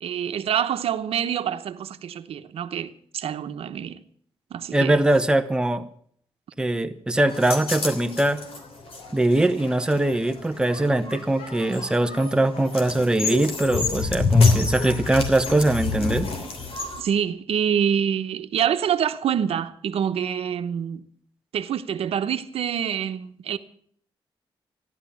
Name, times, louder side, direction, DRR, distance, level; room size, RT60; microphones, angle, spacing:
voice 1, 0.0-4.0 4.5-5.0 17.0-21.1 21.5-23.6, right 8 dB, 90° right, 1.0 m, -26 dB
voice 2, 4.7-5.8 6.6-8.4 9.1-16.3, right 1 dB, 10° right, 0.9 m, -22 dB
sound 1, 7.3-17.0, left 4 dB, 80° left, 3.2 m, -27 dB
15.0 x 12.0 x 7.1 m
wide cardioid pair, 160°, 10 cm